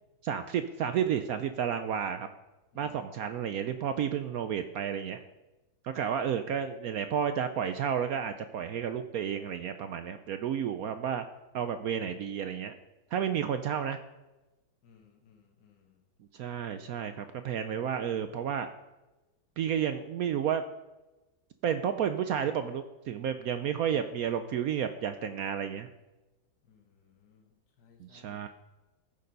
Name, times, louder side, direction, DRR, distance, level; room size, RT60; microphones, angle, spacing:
voice 1, 0.2-2.3 2.8-5.2 5.8-11.3 11.5-12.7 13.1-14.0 16.3-18.7 19.6-20.6 21.6-25.9 28.0-28.5, right 8 dB, 75° right, 9 dB, 0.8 m, -31 dB
voice 2, 14.8-16.0 26.7-28.4, left 6 dB, 60° left, 2 dB, 1.9 m, -62 dB
14.5 x 6.7 x 5.3 m, 1.1 s
omnidirectional pair, 2.1 m